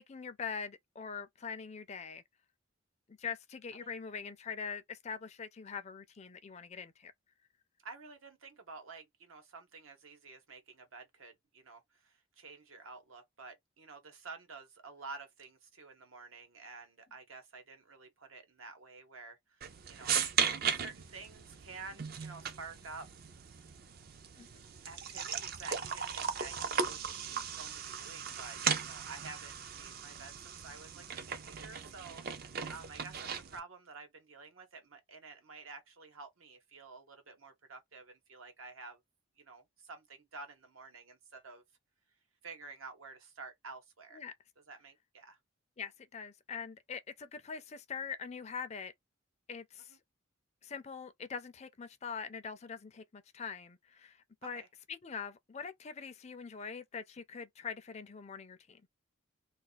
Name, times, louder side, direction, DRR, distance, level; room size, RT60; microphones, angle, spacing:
voice 1, 0.0-2.2 3.1-7.1 24.3-24.5 44.1-44.3 45.8-48.9 49.5-50.0 50.6-54.6 54.9-58.8, left 6 dB, 30° left, 0.4 m, -43 dB
voice 2, 7.8-20.1 20.7-23.1 24.9-39.0 39.4-41.6 42.4-44.2 44.7-45.4 49.8-50.0 54.4-54.7, right 4 dB, 80° right, 1.0 m, -50 dB
sound 1, 19.6-33.6, right 7 dB, 45° right, 0.4 m, -37 dB
2.4 x 2.3 x 3.9 m
head